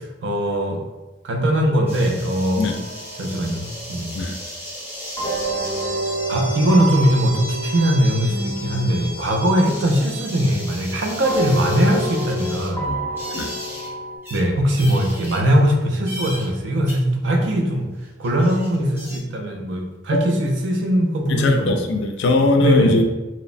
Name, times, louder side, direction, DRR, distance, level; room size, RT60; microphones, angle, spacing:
voice 1, 0.2-0.8 1.2-2.7 3.2-4.2 6.3-13.0 14.3-17.9 18.2-21.8 22.6-23.0, equal, 80° right, 2 dB, 0.4 m, -20 dB
sound 1, 1.9-13.9 14.2-14.4 14.8-15.7 16.1-16.5 16.9-17.0 17.9-18.0 18.2-19.2, equal, 15° right, 0.6 m, -35 dB
sound 2, 2.6-4.0 5.2-10.9 11.2-14.2, right 1 dB, 20° left, 0.7 m, -30 dB
voice 2, 21.3-23.0, left 2 dB, 70° left, 4 dB, 0.3 m, -20 dB
2.9 x 2.0 x 2.5 m, 1.1 s
head